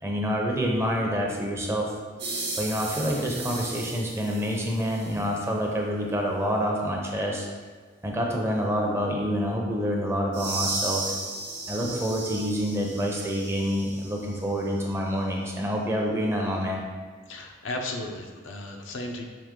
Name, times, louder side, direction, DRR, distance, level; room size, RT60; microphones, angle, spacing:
voice 1, 0.0-1.9 2.6-7.5 8.0-11.1 11.7-16.8, equal, 15° right, -1 dB, 0.5 m, -27 dB
sound 1, 2.2-5.2 10.3-14.4, right 2 dB, 65° right, 0.9 m, -35 dB
voice 2, 17.3-19.2, left 2 dB, 80° left, 3 dB, 0.6 m, -35 dB
4.9 x 2.9 x 3.6 m, 1.5 s
head